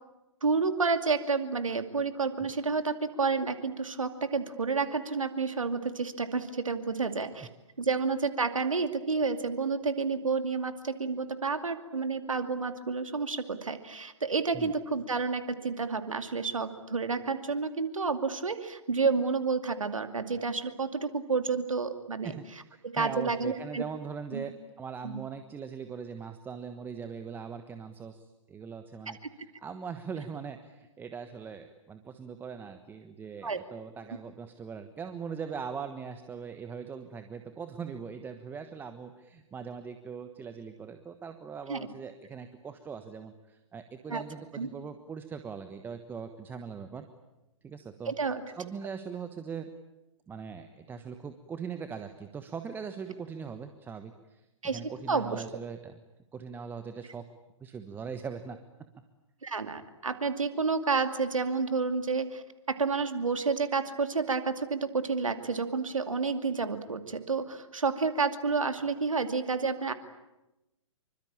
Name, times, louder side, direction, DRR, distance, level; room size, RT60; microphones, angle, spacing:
voice 1, 0.4-7.5 7.8-22.3 22.8-23.8 24.3-24.5 25.0-25.2 29.1-29.2 33.4-33.6 41.7-41.9 44.1-44.2 44.5-44.7 48.1-48.4 54.6-54.8 55.1-55.4 59.4-69.9, right 4 dB, 80° right, 9 dB, 2.5 m, -30 dB
voice 2, 22.2-47.1 47.6-48.1 48.5-49.7 50.3-54.5 54.7-56.0 56.3-57.2 57.6-58.6, right 6 dB, 10° right, 8 dB, 1.3 m, -41 dB
26.5 x 24.5 x 8.8 m, 0.97 s
figure-of-eight pair, 120°, 17 cm